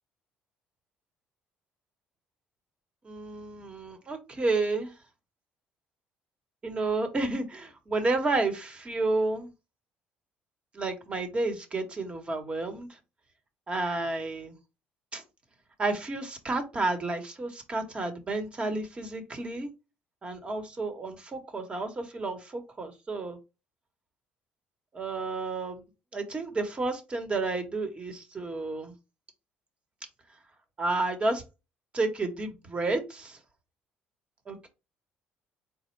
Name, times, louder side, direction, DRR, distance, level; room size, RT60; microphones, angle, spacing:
voice 1, 3.0-4.9 6.6-9.5 10.7-12.9 13.7-14.5 15.1-15.2 15.8-19.7 20.2-23.4 24.9-25.8 26.1-28.9 30.8-31.4 31.9-33.4 34.5-34.7, right 3 dB, 30° right, 7 dB, 1.1 m, -31 dB
4.2 x 2.2 x 4.4 m, 0.27 s
supercardioid pair, 90°, 4 cm